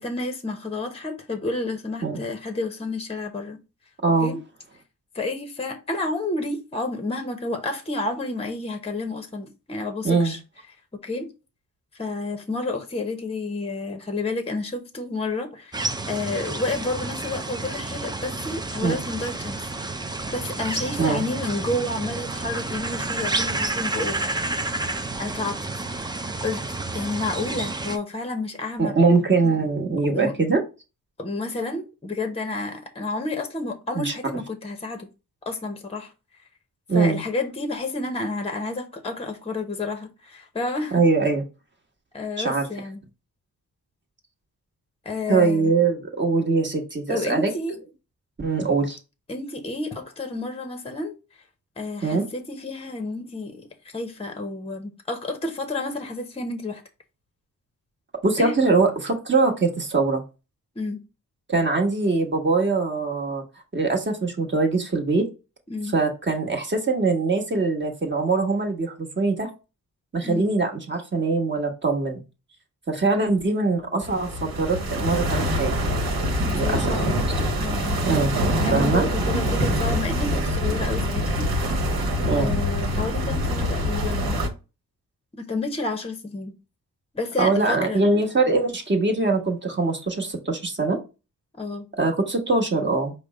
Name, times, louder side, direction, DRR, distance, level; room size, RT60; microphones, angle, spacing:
voice 1, 0.0-3.6 4.0-4.4 5.1-10.4 11.0-11.3 12.0-19.6 20.3-24.3 25.2-25.6 26.1-26.6 26.9-28.9 30.0-30.3 31.2-35.1 35.5-36.1 36.9-41.0 42.1-43.0 45.0-45.7 47.1-47.8 49.3-51.1 51.8-53.7 53.9-56.8 58.4-58.6 60.8-61.0 65.7-65.9 70.2-70.5 76.5-77.3 77.6-78.0 78.6-81.5 82.4-84.5 85.4-86.5 87.1-88.0 91.5-91.9, left 2 dB, 15° left, 0.8 m, -30 dB
voice 2, 4.0-4.3 10.0-10.3 18.8-18.9 21.0-21.2 28.8-30.6 33.9-34.1 36.9-37.2 40.9-41.4 42.4-42.7 45.3-47.5 48.4-49.0 52.0-52.3 58.2-60.2 61.5-63.4 63.7-65.3 65.9-69.5 70.1-72.2 72.9-75.7 76.5-77.2 78.0-78.3 78.7-79.1 82.2-82.6 87.4-91.0 92.0-93.1, right 3 dB, 30° right, 1.2 m, -22 dB
sound 1, 15.7-28.0, right 2 dB, 10° right, 0.4 m, -30 dB
sound 2, 74.0-84.5, equal, 80° right, 1.1 m, -24 dB
5.1 x 2.1 x 4.7 m
cardioid pair, 95°, 36 cm